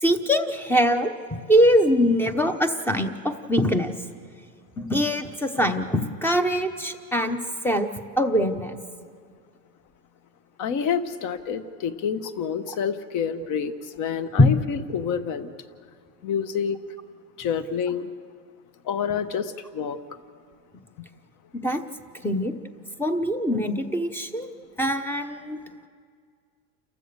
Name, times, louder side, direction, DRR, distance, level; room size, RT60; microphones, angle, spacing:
voice 1, 0.0-1.1 1.5-3.9 4.8-7.4 7.6-7.9 8.2-8.8 14.4-14.5 21.6-21.8 22.2-22.5 23.0-24.5 24.8-25.6, equal, 5° left, 8 dB, 0.8 m, -22 dB
voice 2, 10.6-13.7 14.0-15.5 16.2-16.8 17.4-18.1 18.9-20.0, left 7 dB, 40° left, 11 dB, 1.2 m, -28 dB
29.0 x 15.0 x 6.8 m, 2.1 s
supercardioid pair, 135°, 48 cm